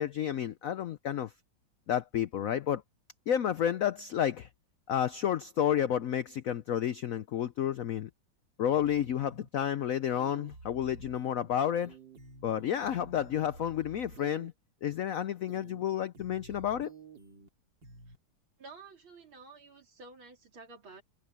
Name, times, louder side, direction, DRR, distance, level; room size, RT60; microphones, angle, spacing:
voice 1, 0.0-1.3 1.9-2.8 3.3-4.5 4.9-8.1 8.6-12.0 12.4-14.5 14.8-16.9, left 10 dB, 80° left, 0.7 m, -31 dB
sound 1, 8.7-9.5 10.1-11.5 11.8-14.5 15.5-15.8 16.1-17.5 17.8-18.2, right 3 dB, 60° right, 4.1 m, -51 dB
voice 2, 18.6-21.0, right 3 dB, 80° right, 4.2 m, -51 dB
open air
omnidirectional pair, 2.2 m